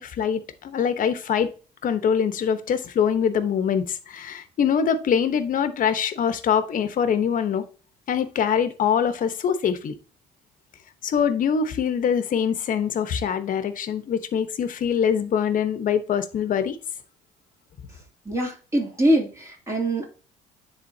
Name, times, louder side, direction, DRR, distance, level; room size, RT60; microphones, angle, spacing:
voice 1, 0.0-1.5 1.8-7.6 8.1-9.9 11.0-16.8, left 7 dB, 50° left, 1.1 m, -24 dB
voice 2, 18.2-20.0, right 1 dB, 20° right, 2.8 m, -23 dB
10.0 x 3.9 x 2.7 m
cardioid pair, 110°, 17 cm